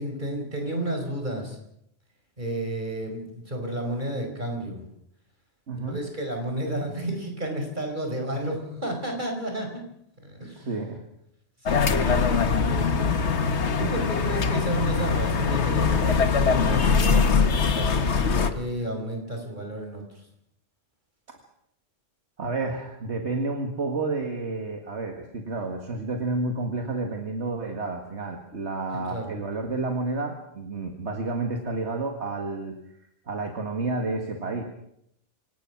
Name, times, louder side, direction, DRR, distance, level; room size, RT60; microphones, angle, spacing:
voice 1, 0.0-1.6 2.4-4.8 5.7-9.8 10.2-10.7 11.6-13.2 13.5-20.0 29.1-29.3, right 1 dB, 40° right, 3 dB, 5.1 m, -32 dB
voice 2, 5.7-6.0 10.6-11.0 21.3-21.4 22.4-32.8 33.3-34.6, right 3 dB, 65° right, 4 dB, 2.1 m, -30 dB
sound 1, 11.7-18.5, left 5 dB, 65° left, 1.5 m, -22 dB
26.0 x 18.0 x 6.0 m, 0.75 s
omnidirectional pair, 1.2 m